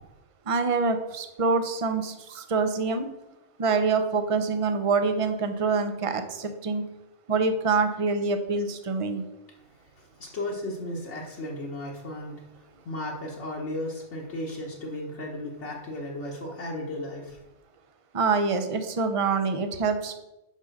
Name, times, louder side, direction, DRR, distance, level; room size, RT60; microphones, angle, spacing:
voice 1, 0.5-3.1 3.6-6.9 7.3-9.2 18.1-20.2, right 4 dB, 35° right, 8 dB, 0.6 m, -25 dB
voice 2, 9.7-17.4, left 1 dB, 70° left, -3 dB, 1.5 m, -35 dB
5.5 x 5.1 x 6.4 m, 0.99 s
omnidirectional pair, 1.2 m